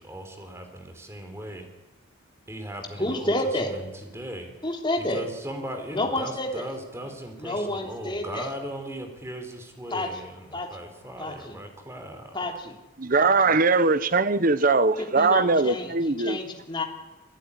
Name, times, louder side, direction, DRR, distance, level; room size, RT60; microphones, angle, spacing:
voice 1, 0.0-1.7 2.5-3.3 3.6-3.9 4.1-4.5 5.0-12.4, right 1 dB, 15° right, 5 dB, 4.1 m, -38 dB
voice 2, 3.0-3.7 4.6-5.2 5.9-6.7 7.4-8.5 9.9-10.1 10.5-10.7 11.2-11.6 12.3-12.8 13.2-13.6 15.0-16.8, left 1 dB, 25° left, 2 dB, 3.3 m, -30 dB
voice 3, 13.0-16.4, right 3 dB, 45° right, 14 dB, 1.1 m, -21 dB
27.0 x 16.0 x 10.0 m, 1.1 s
head